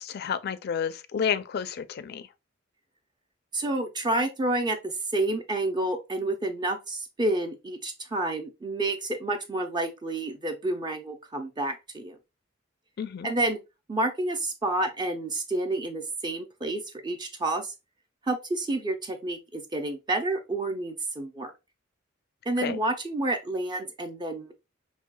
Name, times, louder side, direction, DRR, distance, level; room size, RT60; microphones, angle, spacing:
voice 1, 0.0-2.3 13.0-13.3 22.6-22.8, left 7 dB, 50° left, 0.4 m, -30 dB
voice 2, 3.5-12.2 13.2-13.6 13.9-17.7 18.3-21.5 22.5-24.5, right 2 dB, 20° right, 0.4 m, -29 dB
5.4 x 2.6 x 2.2 m
head